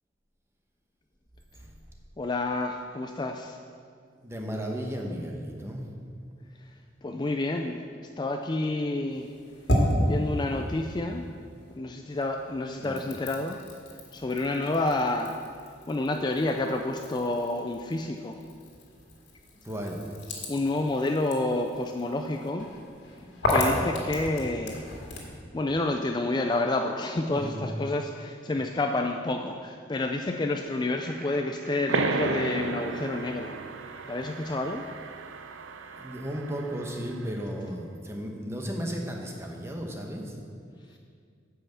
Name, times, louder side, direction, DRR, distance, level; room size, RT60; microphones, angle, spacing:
voice 1, 2.2-3.6 7.0-7.8 8.2-9.3 10.0-11.2 11.8-13.6 14.1-15.3 15.9-18.4 20.5-22.7 23.5-24.9 25.5-33.6 34.1-34.8, left 2 dB, 25° left, 4 dB, 0.4 m, -29 dB
voice 2, 4.2-5.8 12.8-13.1 19.6-20.1 27.3-27.7 35.9-40.4, equal, 15° right, 1 dB, 1.0 m, -35 dB
sound 1, 9.1-11.8 12.1-25.4, left 1 dB, 60° left, 1.9 m, -33 dB
sound 2, 31.0-32.6, right 3 dB, 45° right, 0.9 m, -48 dB
sound 3, 31.9-37.1, right 4 dB, 90° right, 0.6 m, -33 dB
9.7 x 5.6 x 7.3 m, 2.2 s
head